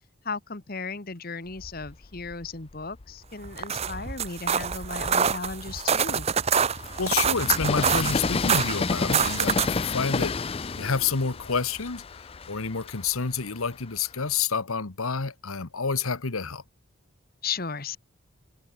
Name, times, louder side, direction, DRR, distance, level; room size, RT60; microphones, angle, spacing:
voice 1, 0.2-6.3 17.4-18.0, left 4 dB, 45° left, 1.4 m, -35 dB
Train, 1.5-3.2 3.8-14.4, left 4 dB, 25° left, 0.5 m, -32 dB
sound 1, 3.4-9.8, right 7 dB, 30° right, 0.6 m, -26 dB
voice 2, 7.0-16.6, left 5 dB, 85° left, 1.4 m, -29 dB
head